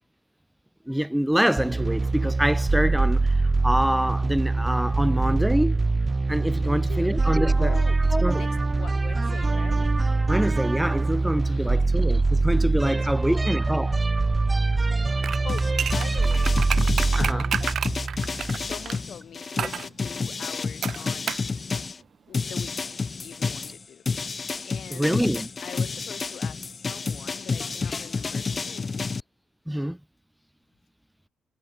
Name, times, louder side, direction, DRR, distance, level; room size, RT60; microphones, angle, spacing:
voice 1, 0.9-5.7 6.3-7.8 8.1-8.4 10.3-14.0 17.2-17.5 24.9-25.5 29.7-30.0, equal, 5° right, 0.5 m, -25 dB
sound 1, 1.6-18.9, right 3 dB, 20° right, 0.9 m, -23 dB
voice 2, 6.6-7.1 7.5-8.0 8.3-9.9 11.4-11.9 12.8-13.6 15.1-16.7 17.1-17.8 18.6-21.4 22.3-24.0 24.6-25.3 25.6-29.1, left 9 dB, 60° left, 6.0 m, -43 dB
sound 2, 15.2-19.0 19.6-19.9 20.8-21.5 21.8-21.9, right 8 dB, 55° right, 0.9 m, -30 dB
sound 3, 15.5-22.0 22.3-29.2, left 4 dB, 35° left, 1.2 m, -30 dB
cardioid pair, 90°, 0 cm